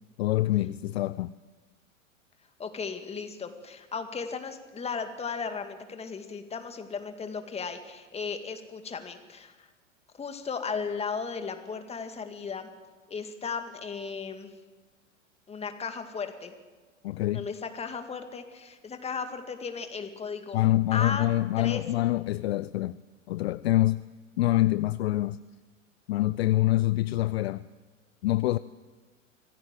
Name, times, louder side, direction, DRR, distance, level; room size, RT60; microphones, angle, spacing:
voice 1, 0.2-1.3 17.0-17.5 20.5-23.0 23.3-24.0 24.4-25.4 26.1-27.6 28.2-28.6, left 16 dB, 55° left, 0.6 m, -25 dB
voice 2, 2.6-9.7 10.2-12.7 13.1-14.5 15.5-16.6 17.3-20.6 20.9-21.3 21.6-21.8, left 5 dB, 15° left, 2.2 m, -35 dB
24.5 x 17.0 x 7.7 m
figure-of-eight pair, 95°, 38 cm